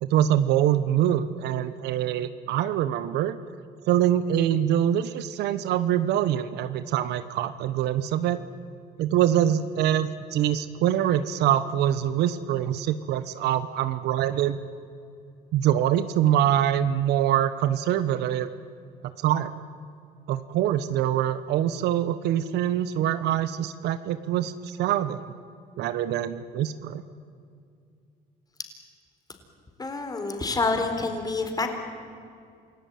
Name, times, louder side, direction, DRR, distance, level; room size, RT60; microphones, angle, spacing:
voice 1, 0.0-3.4 3.9-8.4 9.0-14.6 15.5-18.5 19.2-19.5 20.3-25.2 25.8-27.0, right 11 dB, 80° right, 12 dB, 1.1 m, -24 dB
voice 2, 29.8-31.8, left 3 dB, 20° left, 6 dB, 4.0 m, -27 dB
28.0 x 17.0 x 9.3 m, 2.4 s
cardioid pair, 110°, 17 cm